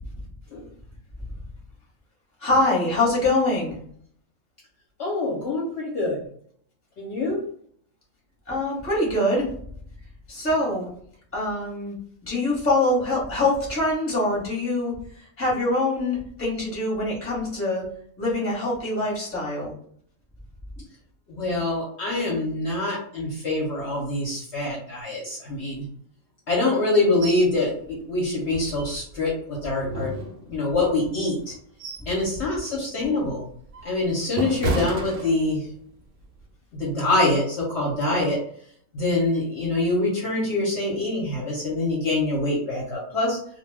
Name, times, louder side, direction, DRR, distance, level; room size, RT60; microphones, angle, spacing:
voice 1, 2.4-3.8 8.5-9.4 10.3-10.9 11.3-11.9 12.2-14.9 15.4-17.8 18.2-19.7, left 2 dB, 10° left, -5 dB, 0.9 m, -24 dB
voice 2, 5.0-6.2 7.0-7.4 21.3-25.9 26.5-30.1 30.5-31.5 32.1-33.4 33.8-35.7 36.7-38.4 38.9-43.4, left 2 dB, 55° left, -4 dB, 0.9 m, -25 dB
sound 1, 27.2-27.5 27.9-28.0 28.5-29.3 29.8-30.8 31.4-32.2 32.6-32.8 33.4-35.8 36.2-36.4, right 2 dB, 75° right, 0.5 m, -32 dB
2.2 x 2.2 x 3.3 m, 0.62 s
omnidirectional pair, 1.5 m